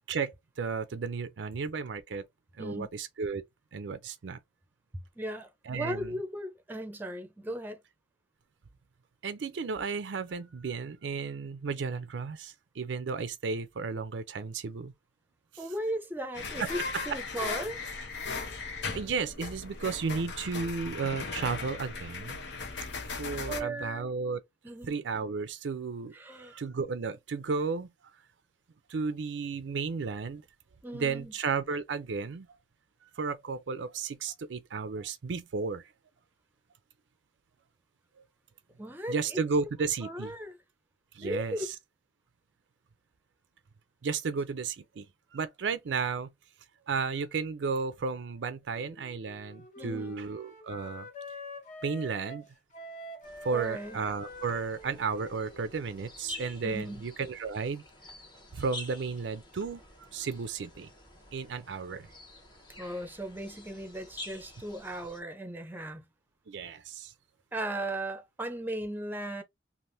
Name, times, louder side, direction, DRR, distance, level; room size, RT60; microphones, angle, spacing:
voice 1, 0.1-2.3 2.6-3.4 3.7-4.4 5.7-6.1 9.2-14.9 15.5-15.6 16.6-16.7 18.9-22.4 23.2-24.4 24.8-26.1 26.4-27.9 28.9-30.4 30.9-32.5 33.2-35.8 39.1-40.3 41.1-41.8 44.0-45.1 45.3-46.3 46.9-51.1 51.8-52.5 53.4-57.8 58.5-59.8 60.1-60.9 61.3-62.1 66.5-67.1, right 5 dB, 85° right, 0.5 m, -33 dB
voice 2, 5.2-7.8 15.6-17.8 23.5-24.1 24.6-24.9 26.1-26.6 30.8-31.3 38.8-39.4 40.0-40.6 41.2-41.6 49.8-50.2 53.5-54.0 56.6-57.0 62.8-66.0 67.5-69.4, right 1 dB, 10° right, 0.6 m, -37 dB
sound 1, 16.3-23.6, left 4 dB, 75° left, 0.8 m, -37 dB
Wind instrument woodwind instrument, 48.7-56.7, left 1 dB, 45° left, 0.8 m, -47 dB
sound 2, 53.2-65.2, left 2 dB, 25° left, 0.9 m, -49 dB
3.4 x 2.5 x 2.6 m
head